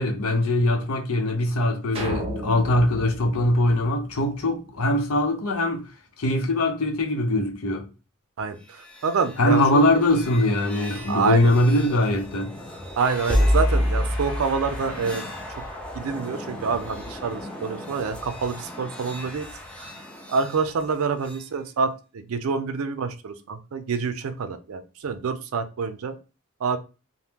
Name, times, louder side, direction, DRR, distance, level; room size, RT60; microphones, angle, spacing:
voice 1, 0.0-5.8 6.2-7.9 9.4-12.8, left 1 dB, 90° left, 0.7 m, -22 dB
sound 1, 1.9-4.4, equal, 25° right, 0.7 m, -33 dB
voice 2, 8.4-9.8 11.1-11.5 13.0-15.2 15.9-19.5 19.8-19.9 20.3-26.1 26.6-26.8, right 5 dB, 80° right, 0.4 m, -27 dB
sound 2, 8.6-21.5, equal, 5° left, 0.4 m, -30 dB
sound 3, 13.0-16.7, left 3 dB, 40° left, 0.9 m, -44 dB
2.8 x 2.1 x 3.4 m
head